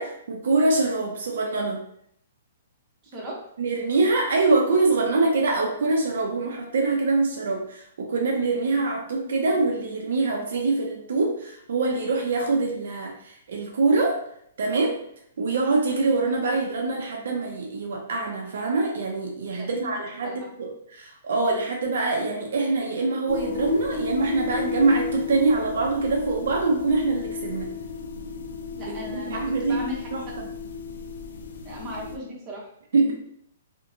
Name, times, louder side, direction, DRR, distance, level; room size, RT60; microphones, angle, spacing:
voice 1, 0.0-1.8 3.6-14.2 14.6-15.0 15.4-27.7 28.8-29.9 30.1-30.2 32.9-33.1, right 3 dB, 70° right, 1 dB, 0.5 m, -24 dB
voice 2, 19.6-19.9 20.2-20.3 28.8-29.4 29.7-30.1 31.6-32.6 33.0-33.1, equal, 20° right, -4 dB, 0.8 m, -36 dB
sound 1, 23.3-32.2, left 5 dB, 70° left, 0.3 m, -34 dB
2.8 x 2.1 x 2.5 m, 0.69 s
hypercardioid pair, 155°, 0 cm